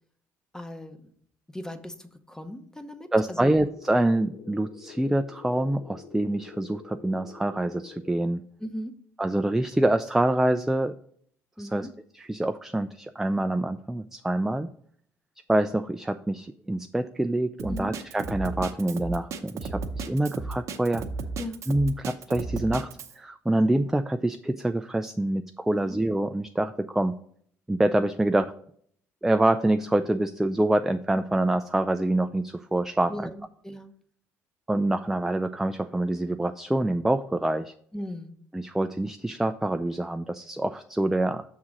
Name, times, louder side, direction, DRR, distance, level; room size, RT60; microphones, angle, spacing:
voice 1, 0.5-1.1 1.5-3.5 8.6-9.0 11.6-11.9 17.7-17.9 21.4-21.6 25.7-26.0 33.1-33.9 37.9-38.3, left 1 dB, 10° left, 9 dB, 0.8 m, -38 dB
voice 2, 3.1-8.4 9.2-10.9 11.6-11.9 12.1-14.7 15.5-21.0 21.7-22.9 23.2-27.1 27.7-28.5 29.2-33.3 34.7-37.7 38.5-41.4, right 1 dB, 5° right, 9 dB, 0.3 m, -26 dB
sound 1, 3.3-8.2, left 5 dB, 75° left, 1.1 m, -47 dB
Drum kit, 17.6-23.1, right 4 dB, 60° right, 0.8 m, -34 dB
6.2 x 3.7 x 5.9 m, 0.63 s
supercardioid pair, 85°, 6 cm